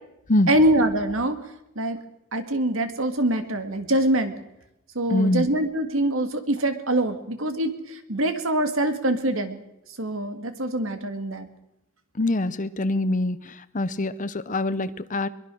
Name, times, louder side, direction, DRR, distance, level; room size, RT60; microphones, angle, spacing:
voice 1, 0.5-1.4 1.8-2.0 2.3-4.3 5.0-9.6 10.0-11.5, right 1 dB, 70° right, 9 dB, 2.1 m, -24 dB
voice 2, 5.1-5.5 12.1-15.3, left 1 dB, 40° left, 15 dB, 0.9 m, -24 dB
22.5 x 22.0 x 6.3 m, 0.88 s
head